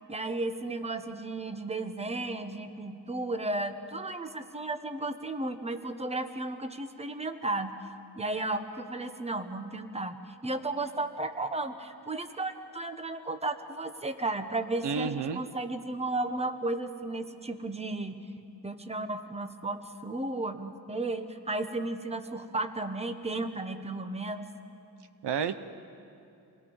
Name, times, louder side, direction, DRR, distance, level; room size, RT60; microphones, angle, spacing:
voice 1, 0.1-7.7 8.2-18.3 18.6-24.5, right 2 dB, 15° right, 8 dB, 1.2 m, -34 dB
voice 2, 14.8-15.4 25.2-25.6, right 6 dB, 75° right, 11 dB, 0.9 m, -30 dB
28.0 x 20.5 x 5.5 m, 2.8 s
wide cardioid pair, 105°, 41 cm